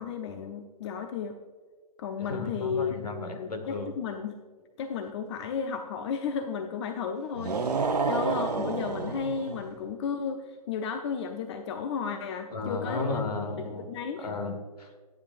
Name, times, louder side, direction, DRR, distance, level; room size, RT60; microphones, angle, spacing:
voice 1, 0.0-1.4 2.0-2.9 3.3-4.4 4.8-13.2 13.6-14.3, left 6 dB, 45° left, 7 dB, 0.7 m, -33 dB
voice 2, 2.2-3.9 12.5-13.9 14.2-15.0, left 3 dB, 70° left, 5 dB, 1.9 m, -34 dB
sound 1, 7.3-9.7, right 4 dB, 80° right, 0.9 m, -29 dB
14.0 x 9.6 x 2.5 m, 1.5 s
figure-of-eight pair, 125°, 20 cm